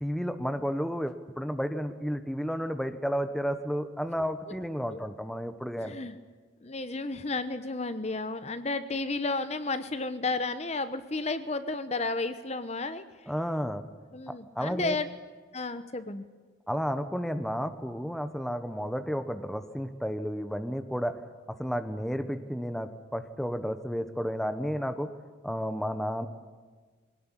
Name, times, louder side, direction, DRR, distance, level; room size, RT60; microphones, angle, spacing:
voice 1, 0.0-6.0 13.3-13.8 14.3-15.0 16.7-21.2 21.6-25.1 25.4-26.3, equal, ahead, 9 dB, 1.1 m, -32 dB
voice 2, 5.8-6.2 6.6-13.0 14.1-15.1 15.5-16.2, left 3 dB, 35° left, 12 dB, 1.0 m, -32 dB
22.5 x 18.5 x 10.0 m, 1.4 s
head